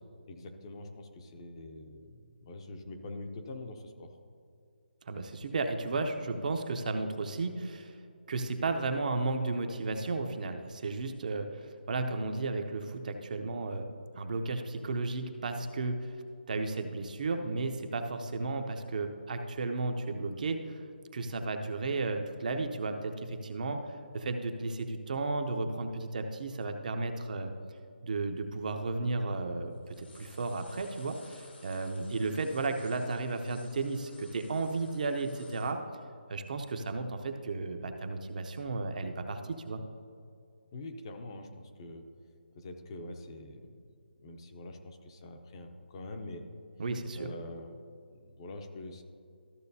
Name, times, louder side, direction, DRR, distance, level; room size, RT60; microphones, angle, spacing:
voice 1, 0.3-4.1 40.7-42.1 42.5-43.8 44.2-46.4 47.1-47.8 48.1-49.0, left 2 dB, 25° left, 5 dB, 0.6 m, -44 dB
voice 2, 5.1-8.0 8.3-13.9 14.1-16.0 16.5-20.6 21.1-27.5 28.0-35.8 36.3-39.8 46.8-47.3, right 3 dB, 45° right, 5 dB, 0.7 m, -34 dB
sound 1, 28.5-28.6 28.8-29.5 29.7-35.7, left 3 dB, 75° left, 1.4 m, -58 dB
14.0 x 6.3 x 2.7 m, 2.3 s
hypercardioid pair, 165°, 6 cm